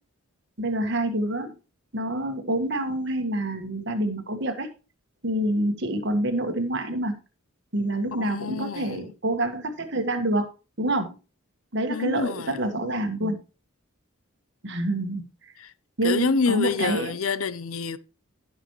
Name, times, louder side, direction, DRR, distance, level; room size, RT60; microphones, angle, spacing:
voice 1, 0.6-1.5 1.9-4.7 5.2-7.1 7.7-10.5 10.8-11.1 11.7-13.4 14.6-15.2 16.0-17.2, right 1 dB, 55° right, 1.7 m, -27 dB
voice 2, 8.2-9.0 11.9-13.0 15.6-15.7 16.0-18.0, left 4 dB, 80° left, 0.6 m, -27 dB
15.5 x 6.3 x 3.2 m
head